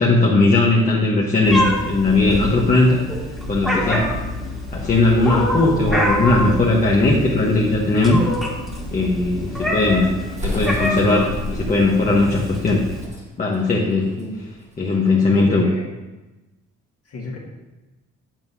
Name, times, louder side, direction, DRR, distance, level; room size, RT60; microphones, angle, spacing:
voice 1, 0.0-3.0 3.5-4.1 4.7-8.2 8.9-12.8 13.4-14.2 14.8-15.7, left 2 dB, 25° left, -3 dB, 1.0 m, -18 dB
Meow, 1.5-13.0, left 1 dB, ahead, 1.9 m, -26 dB
sound 1, 9.3-14.9, left 1 dB, 25° right, 1.7 m, -34 dB
voice 2, 15.2-15.9 17.1-17.4, left 2 dB, 55° left, -1 dB, 1.7 m, -33 dB
7.7 x 7.3 x 2.7 m, 1.1 s
cardioid pair, 90°, 30 cm